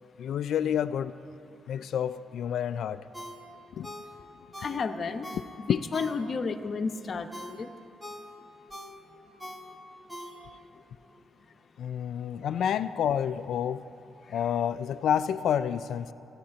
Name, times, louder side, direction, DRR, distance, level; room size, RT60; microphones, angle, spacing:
voice 1, 0.2-1.1 1.7-3.0 3.8-3.9 5.7-5.8 11.8-13.8 14.3-16.1, left 9 dB, 75° left, 11 dB, 0.4 m, -29 dB
Ringtone, 3.1-6.6 7.0-10.8 11.1-11.2, equal, 10° right, 1.8 m, -44 dB
voice 2, 4.6-5.3 5.6-7.7, left 4 dB, 50° left, 6 dB, 0.9 m, -32 dB
14.5 x 10.5 x 8.7 m, 2.7 s
cardioid pair, 75°, 0 cm